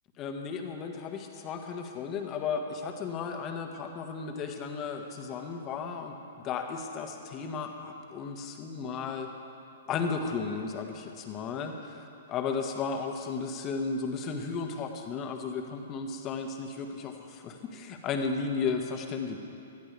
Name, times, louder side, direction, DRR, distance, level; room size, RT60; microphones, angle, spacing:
voice 1, 0.2-6.2 6.4-9.3 9.9-19.4, left 5 dB, 30° left, 4 dB, 1.5 m, -34 dB
20.5 x 13.0 x 3.4 m, 2.7 s
hypercardioid pair, 120°, 0 cm